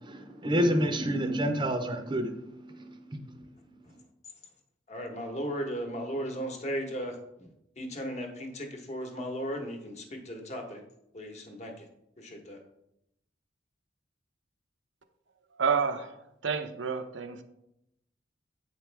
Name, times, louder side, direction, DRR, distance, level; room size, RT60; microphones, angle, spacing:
voice 1, 0.0-3.3, equal, 25° right, 6 dB, 0.6 m, -29 dB
voice 2, 4.9-7.5 7.8-10.8 11.1-11.9 12.2-12.6, equal, 40° left, 3 dB, 1.1 m, -36 dB
voice 3, 15.6-16.1 16.4-17.4, right 6 dB, 80° right, 8 dB, 0.6 m, -29 dB
8.3 x 4.9 x 3.4 m, 0.81 s
head